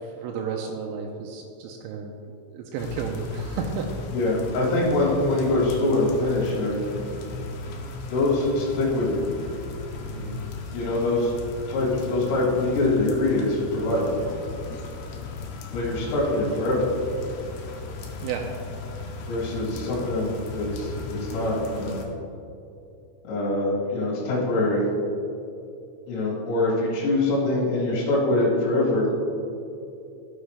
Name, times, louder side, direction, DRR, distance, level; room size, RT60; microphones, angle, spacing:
voice 1, 0.0-2.2 2.5-3.9 10.1-10.4 18.2-18.5, right 6 dB, 85° right, 1 dB, 3.2 m, -32 dB
sound 1, 2.8-22.1, left 4 dB, 80° left, 2.3 m, -36 dB
voice 2, 4.1-7.0 8.1-9.2 10.7-11.3 11.7-14.0 15.7-16.9 19.3-22.0 23.2-24.9 26.1-29.1, left 2 dB, 65° left, -6 dB, 4.1 m, -24 dB
13.0 x 6.4 x 3.3 m, 2.7 s
omnidirectional pair, 5.9 m